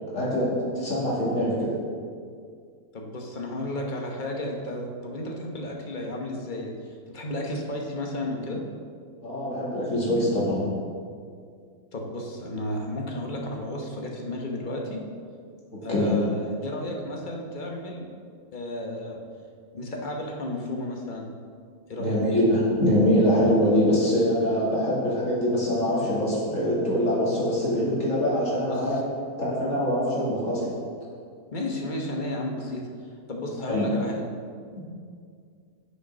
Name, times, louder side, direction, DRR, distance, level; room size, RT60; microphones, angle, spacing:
voice 1, 0.1-0.5 0.7-1.7 9.2-10.7 15.7-16.2 22.0-29.0 29.4-30.7 33.6-33.9, equal, 55° left, -6 dB, 2.8 m, -24 dB
voice 2, 2.9-6.7 7.1-8.6 11.9-15.0 15.8-18.1 18.5-19.2 19.7-21.3 21.9-22.2 28.6-29.0 31.5-32.9 33.3-34.3, left 1 dB, 35° left, 0 dB, 1.1 m, -33 dB
7.7 x 6.8 x 5.5 m, 2.2 s
omnidirectional pair, 1.6 m